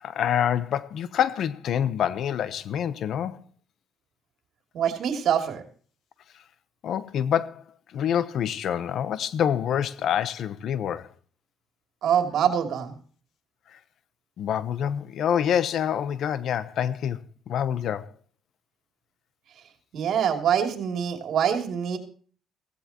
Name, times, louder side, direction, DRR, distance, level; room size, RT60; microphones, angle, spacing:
voice 1, 0.0-3.4 6.8-7.6 7.9-11.1 14.4-17.2 17.5-18.1, left 9 dB, 70° left, 0.9 m, -26 dB
voice 2, 4.7-5.6 12.0-12.9 19.9-22.0, right 8 dB, 70° right, 2.9 m, -24 dB
16.5 x 15.5 x 3.0 m
cardioid pair, 90°, 0 cm